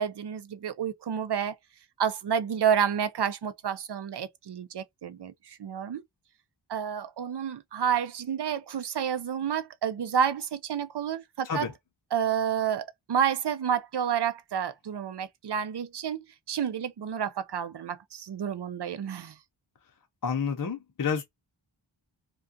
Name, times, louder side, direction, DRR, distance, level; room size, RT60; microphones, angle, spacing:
voice 1, 0.0-1.5 2.0-6.0 6.7-11.6 12.1-19.3, right 8 dB, 60° right, 0.5 m, -30 dB
voice 2, 20.2-21.2, left 6 dB, 45° left, 0.6 m, -29 dB
2.3 x 2.2 x 2.5 m
wide cardioid pair, 75°, 47 cm